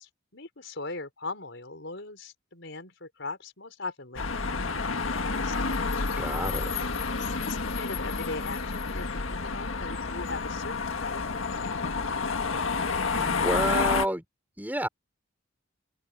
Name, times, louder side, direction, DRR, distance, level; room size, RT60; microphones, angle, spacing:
voice 1, 0.0-5.6 7.1-11.7, left 3 dB, 60° left, 5.9 m, -40 dB
sound 1, 4.2-14.1, left 4 dB, 75° left, 1.7 m, -29 dB
voice 2, 6.2-6.7 13.2-14.2 14.6-14.9, right 1 dB, 10° right, 5.3 m, -29 dB
head